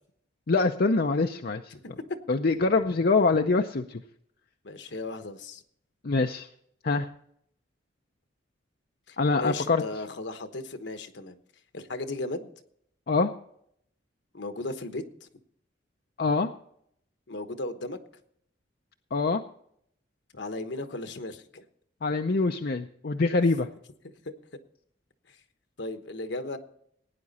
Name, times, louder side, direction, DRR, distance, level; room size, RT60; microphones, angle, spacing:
voice 1, 0.5-1.6 2.3-4.0 6.0-6.5 6.8-7.1 9.2-9.8 13.1-13.3 16.2-16.5 19.1-19.4 22.0-23.7, left 3 dB, 55° left, 5 dB, 0.6 m, -24 dB
voice 2, 1.7-2.0 4.6-5.6 9.1-11.4 11.7-12.5 14.3-15.3 17.3-18.0 20.3-21.6 24.0-24.1 25.8-26.6, left 2 dB, 70° left, 9 dB, 1.2 m, -36 dB
17.0 x 9.7 x 4.2 m, 0.69 s
head